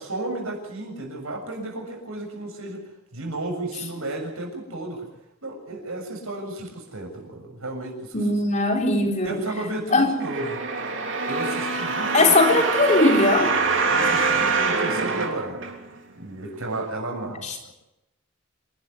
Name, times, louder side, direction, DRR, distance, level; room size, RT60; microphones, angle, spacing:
voice 1, 0.0-5.1 5.4-8.2 9.2-10.6 11.3-12.3 13.9-15.6 16.2-17.7, right 2 dB, 90° right, 2 dB, 7.2 m, -33 dB
voice 2, 8.1-9.4 9.9-10.1 12.1-13.5 17.4-17.7, left 2 dB, 35° left, 2 dB, 3.9 m, -19 dB
sound 1, 10.2-16.1 16.7-16.8, right 4 dB, 65° right, 3.4 m, -25 dB
27.5 x 12.0 x 9.5 m, 0.87 s
head